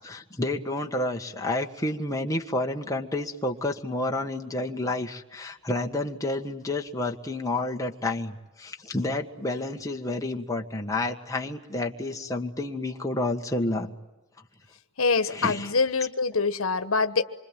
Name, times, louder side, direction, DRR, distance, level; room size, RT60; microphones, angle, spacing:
voice 1, 0.0-13.9 15.3-15.7, left 2 dB, 15° left, 2 dB, 1.6 m, -30 dB
voice 2, 15.0-17.2, left 4 dB, 80° left, 11 dB, 1.3 m, -24 dB
26.0 x 25.0 x 9.1 m, 1.0 s
head